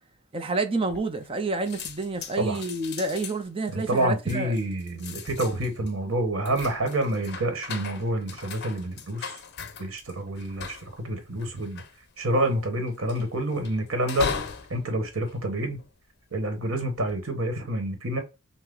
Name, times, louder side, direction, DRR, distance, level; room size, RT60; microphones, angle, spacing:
voice 1, 0.3-4.5, right 3 dB, 25° right, 0.5 m, -29 dB
sound 1, 0.9-1.4 1.7-16.2 16.8-17.2, left 5 dB, 55° left, 0.8 m, -39 dB
voice 2, 3.7-9.3 9.8-11.8 12.2-14.3 14.7-15.8 16.3-18.2, right 1 dB, 85° right, 1.3 m, -28 dB
5.6 x 2.1 x 3.8 m
head